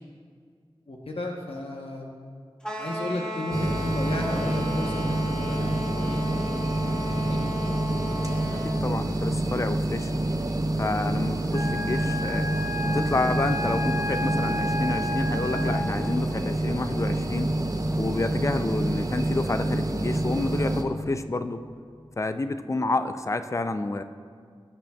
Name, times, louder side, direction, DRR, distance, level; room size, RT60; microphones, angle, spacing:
voice 1, 0.9-2.1 2.7-6.3 7.0-7.4, left 1 dB, 80° left, 0 dB, 1.0 m, -34 dB
sound 1, 2.6-8.9, left 1 dB, 10° left, 1.5 m, -35 dB
sound 2, 3.5-20.8, right 1 dB, 35° right, 0.7 m, -27 dB
voice 2, 8.5-10.1 10.8-12.5 12.8-17.5 18.0-21.6 22.2-24.0, left 2 dB, 30° left, 10 dB, 0.4 m, -29 dB
Wind instrument woodwind instrument, 11.5-16.1, left 1 dB, 60° right, 1.5 m, -32 dB
17.0 x 7.7 x 2.3 m, 2.1 s
wide cardioid pair, 65°, 10 cm